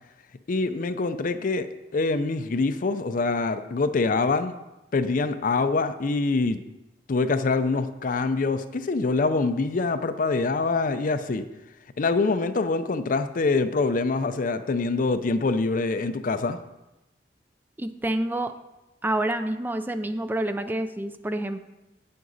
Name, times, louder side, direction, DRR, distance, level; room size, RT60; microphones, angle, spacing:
voice 1, 0.5-1.7 1.9-4.6 4.9-6.6 7.1-11.5 12.0-16.6, left 3 dB, 50° left, 11 dB, 0.5 m, -25 dB
voice 2, 17.8-18.5 19.0-21.6, right 1 dB, 10° right, 9 dB, 0.4 m, -28 dB
8.8 x 7.7 x 4.0 m, 0.98 s
head